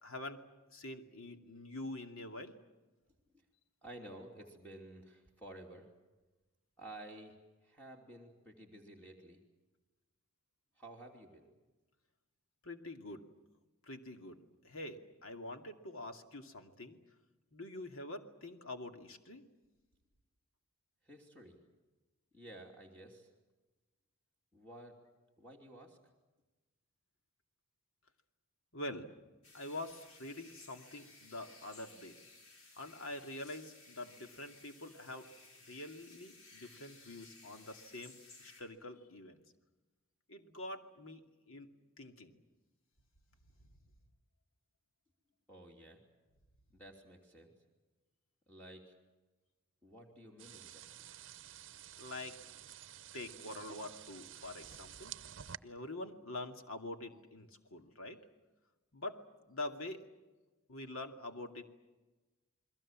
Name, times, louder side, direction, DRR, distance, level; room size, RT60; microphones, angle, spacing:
voice 1, 0.0-0.4 0.7-2.5 12.6-13.2 13.8-14.4 14.6-17.0 17.5-19.4 28.7-29.1 29.5-32.2 32.8-35.3 35.7-39.4 40.3-41.7 42.0-42.4 43.6-43.7 52.0-52.4 53.1-55.2 55.6-58.2 58.9-59.2 59.5-60.0 60.7-61.6, left 2 dB, 75° left, 6 dB, 2.6 m, -45 dB
voice 2, 3.8-5.9 6.8-7.4 7.6-9.4 10.8-11.5 21.0-21.6 22.3-23.3 24.5-25.0 25.4-26.0 45.5-46.0 46.7-47.5 48.5-48.9 49.8-51.0, right 1 dB, 5° left, 1 dB, 3.0 m, -53 dB
sound 1, 29.4-38.6, left 3 dB, 90° left, 7.0 m, -59 dB
sound 2, 50.4-55.6, right 10 dB, 60° right, 0.8 m, -51 dB
29.5 x 22.0 x 7.5 m, 1.2 s
head